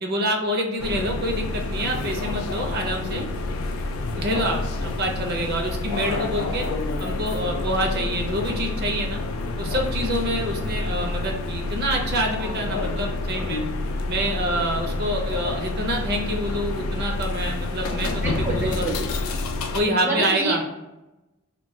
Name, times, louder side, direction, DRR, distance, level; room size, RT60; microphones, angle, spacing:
voice 1, 0.0-3.3 4.2-6.7 7.0-9.2 9.6-13.6 14.1-19.1 19.7-20.6, right 1 dB, 50° right, 1 dB, 0.6 m, -27 dB
sound 1, 0.8-19.8, left 2 dB, 70° left, 0.3 m, -28 dB
voice 2, 12.4-12.9 18.2-19.0 20.0-20.7, right 2 dB, 10° right, -3 dB, 0.4 m, -28 dB
2.2 x 2.2 x 3.7 m, 0.99 s
head